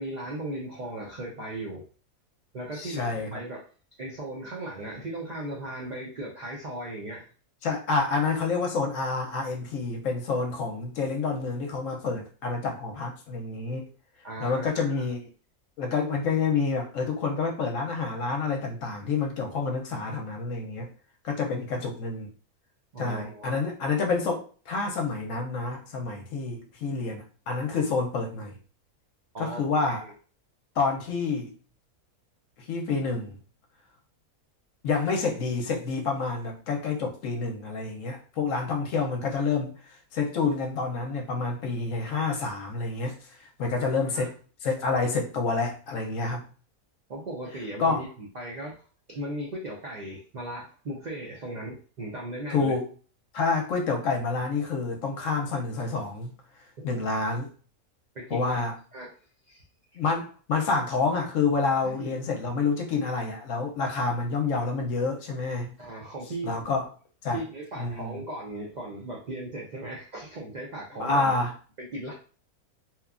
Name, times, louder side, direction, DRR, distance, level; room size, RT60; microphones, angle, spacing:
voice 1, 0.0-1.9 2.5-3.7 4.0-7.3 14.2-15.1 22.9-23.6 29.3-30.1 43.7-44.3 47.1-48.8 49.1-52.8 56.8-57.1 58.1-58.6 58.9-59.2 59.5-59.6 59.9-60.0 61.8-62.2 65.8-66.5 67.3-71.3 71.8-72.1, right 1 dB, 85° right, -3 dB, 0.4 m, -37 dB
voice 2, 2.7-3.4 7.6-13.9 14.4-15.3 15.8-20.9 21.2-22.3 23.0-28.6 29.4-30.0 30.8-31.5 32.7-33.3 34.8-39.7 40.1-43.2 43.6-44.3 44.6-46.4 47.8-48.0 52.5-52.9 53.3-56.3 56.8-57.5 58.3-58.7 60.0-65.7 66.4-66.9 67.2-67.4 67.8-68.2 71.0-71.5, left 4 dB, 70° left, 2 dB, 0.9 m, -28 dB
2.9 x 2.2 x 2.4 m, 0.39 s
omnidirectional pair, 1.6 m